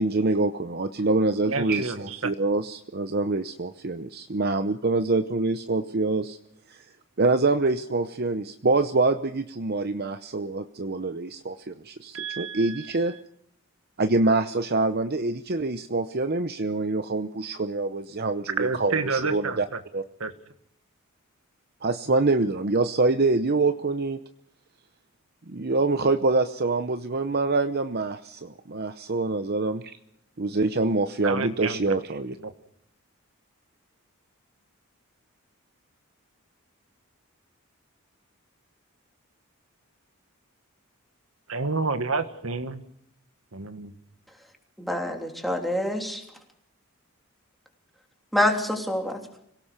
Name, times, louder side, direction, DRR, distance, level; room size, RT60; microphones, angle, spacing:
voice 1, 0.0-6.4 6.7-6.8 7.2-13.1 14.0-19.6 19.9-20.0 21.8-24.2 25.5-29.9 30.4-32.3, right 3 dB, 45° right, 9 dB, 0.8 m, -25 dB
voice 2, 1.5-2.3 12.1-13.2 18.6-19.8 20.2-20.3 31.2-32.0 32.4-32.5 41.5-42.8 43.5-43.9, right 4 dB, 70° right, 9 dB, 1.5 m, -30 dB
voice 3, 44.8-46.2 48.3-49.2, left 1 dB, ahead, 2 dB, 3.2 m, -26 dB
25.5 x 17.5 x 6.8 m, 0.70 s
head